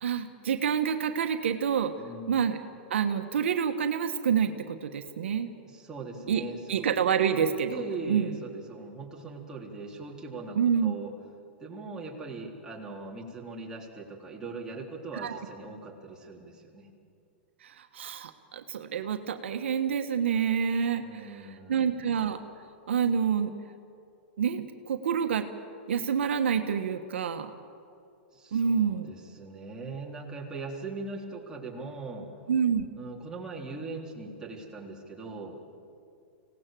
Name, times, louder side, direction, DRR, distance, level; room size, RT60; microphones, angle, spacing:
voice 1, 0.0-1.9 2.3-2.6 2.9-5.5 6.3-6.4 6.7-8.4 10.6-11.0 15.1-15.4 17.6-21.4 21.7-22.4 22.9-23.5 24.4-25.5 25.9-27.5 28.5-29.1 32.5-32.8, right 7 dB, 80° right, 6 dB, 1.4 m, -27 dB
voice 2, 2.0-2.5 5.6-7.1 7.7-11.1 11.6-16.9 21.0-22.1 28.3-32.3 33.0-35.6, right 3 dB, 10° right, -3 dB, 3.7 m, -40 dB
25.5 x 18.0 x 7.6 m, 2.5 s
hypercardioid pair, 130°, 6 cm